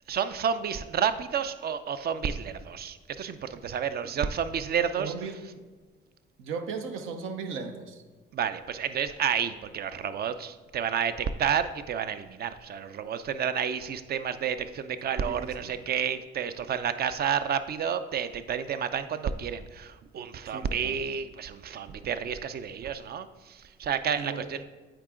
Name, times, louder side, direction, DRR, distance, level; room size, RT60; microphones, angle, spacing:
voice 1, 0.1-5.1 8.3-24.6, right 7 dB, 50° right, 12 dB, 0.5 m, -30 dB
voice 2, 5.0-5.3 6.4-8.0 15.2-15.7 20.5-20.9 24.2-24.5, right 5 dB, 85° right, 7 dB, 0.7 m, -36 dB
9.2 x 3.8 x 3.7 m, 1.4 s
cardioid pair, 90°, 20 cm